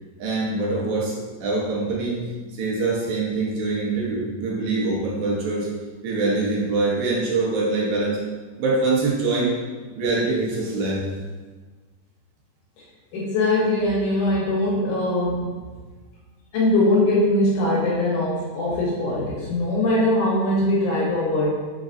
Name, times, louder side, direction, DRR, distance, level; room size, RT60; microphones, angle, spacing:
voice 1, 0.2-2.2 2.5-5.7 6.0-8.2 8.6-9.5 10.0-11.1, right 3 dB, 70° right, -4 dB, 2.1 m, -24 dB
voice 2, 13.1-15.5 16.5-21.5, left 1 dB, 75° left, -4 dB, 2.1 m, -21 dB
5.1 x 3.8 x 2.5 m, 1.4 s
omnidirectional pair, 3.8 m